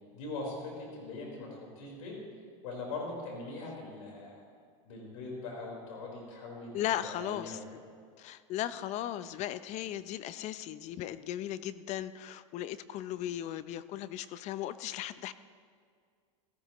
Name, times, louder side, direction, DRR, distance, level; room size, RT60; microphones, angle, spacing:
voice 1, 0.1-2.1 2.6-4.4 4.8-6.7 7.0-7.8, left 2 dB, 75° left, -2 dB, 4.3 m, -41 dB
voice 2, 6.7-7.6 8.2-15.3, left 12 dB, 45° left, 15 dB, 0.6 m, -37 dB
17.5 x 15.5 x 3.0 m, 2.1 s
supercardioid pair, 115°, 17 cm